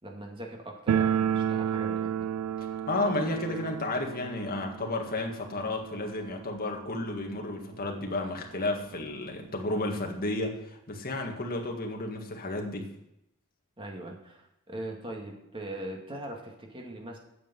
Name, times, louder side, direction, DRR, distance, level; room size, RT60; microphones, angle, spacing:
voice 1, 0.0-2.1 13.8-17.2, right 1 dB, 25° right, 0 dB, 2.2 m, -40 dB
sound 1, 0.9-7.6 7.8-7.9 8.2-8.3 9.0-9.1 9.4-10.6, right 8 dB, 75° right, 0.3 m, -32 dB
voice 2, 2.7-12.9, left 2 dB, 45° left, 2 dB, 1.9 m, -32 dB
9.1 x 7.3 x 7.7 m, 0.83 s
head